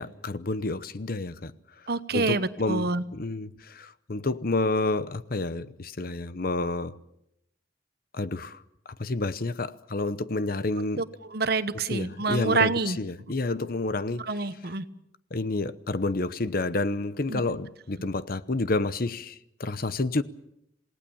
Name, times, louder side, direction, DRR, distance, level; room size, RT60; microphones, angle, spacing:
voice 1, 0.0-1.5 2.1-7.0 8.1-8.6 9.0-11.0 11.9-14.3 15.3-20.2, left 2 dB, 55° left, 0.9 m, -29 dB
voice 2, 1.9-3.0 11.0-13.0 14.2-14.9 17.3-17.4, right 3 dB, 60° right, 1.1 m, -27 dB
27.5 x 18.5 x 7.1 m
head